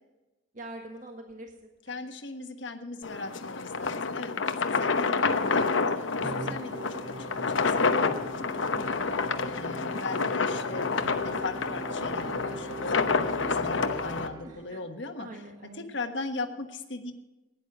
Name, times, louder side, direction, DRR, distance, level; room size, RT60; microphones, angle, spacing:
voice 1, 0.5-2.1 8.7-9.1 14.4-14.8 15.2-15.9, right 1 dB, 40° right, 2 dB, 1.6 m, -45 dB
voice 2, 1.9-4.3 4.6-8.6 9.3-15.3 15.7-17.1, left 3 dB, 65° left, 6 dB, 1.4 m, -39 dB
sound 1, 3.0-14.3, left 4 dB, 80° left, 1.0 m, -28 dB
Musical instrument, 6.2-14.8, right 2 dB, 20° right, 0.7 m, -42 dB
15.5 x 10.5 x 6.0 m, 1.1 s
head